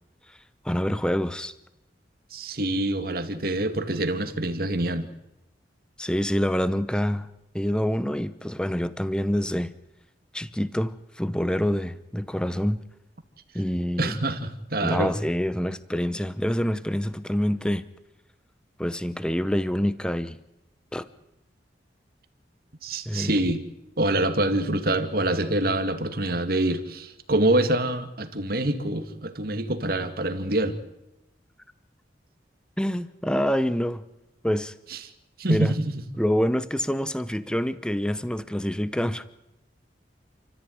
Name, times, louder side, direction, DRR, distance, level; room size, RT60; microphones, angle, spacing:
voice 1, 0.6-1.5 6.0-7.3 7.5-9.7 10.3-12.8 13.5-14.2 14.8-17.8 18.8-20.4 20.9-21.1 23.1-23.4 32.8-34.0 34.4-34.7 35.5-35.7 36.2-39.3, equal, 5° left, 0.8 m, -26 dB
voice 2, 2.3-5.1 14.0-15.1 22.8-23.6 24.0-30.8 34.9-35.0 35.4-35.9, right 1 dB, 55° right, 2.2 m, -25 dB
29.5 x 14.5 x 9.5 m
head